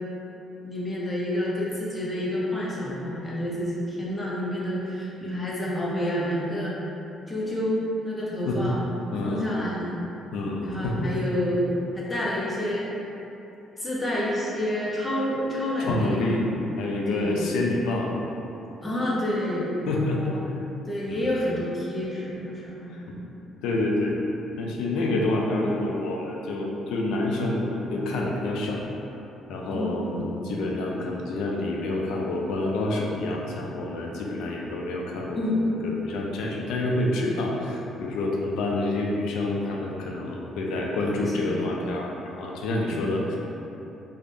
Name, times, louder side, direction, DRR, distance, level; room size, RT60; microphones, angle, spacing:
voice 1, 0.6-6.7 7.3-8.8 9.2-10.0 10.6-11.7 11.9-12.9 13.8-16.3 17.1-17.5 18.8-19.7 20.1-20.4 20.9-22.9 24.9-25.2 29.7-30.4 35.3-35.6 41.2-41.6 42.9-43.0, left 1 dB, 15° left, -6 dB, 0.4 m, -29 dB
voice 2, 9.1-9.5 10.3-11.1 15.8-16.5 16.8-18.1 19.9-20.2 21.1-21.4 22.9-23.2 23.6-24.2 24.6-28.9 29.5-35.5 35.8-43.4, left 2 dB, 80° left, -2 dB, 0.4 m, -28 dB
3.4 x 2.0 x 2.6 m, 3.0 s
cardioid pair, 175°, 0 cm